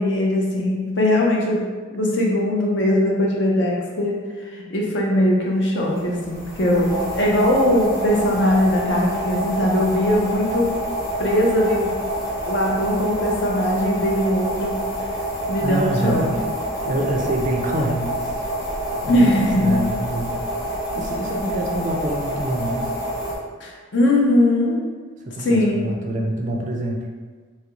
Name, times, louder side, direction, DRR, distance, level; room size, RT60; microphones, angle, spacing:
voice 1, 0.0-1.6 1.9-10.7 11.2-12.0 12.4-14.8 15.5-16.3 19.0-19.9 23.6-24.8 25.4-26.0, left 1 dB, 60° left, -2 dB, 0.6 m, -20 dB
sound 1, 5.9-23.3, equal, 15° left, 0.7 m, -27 dB
voice 2, 15.6-16.4 16.8-18.3 19.0-20.4 20.9-22.9 25.3-27.0, right 1 dB, 40° right, 1 dB, 0.3 m, -26 dB
3.1 x 2.4 x 2.9 m, 1.4 s
head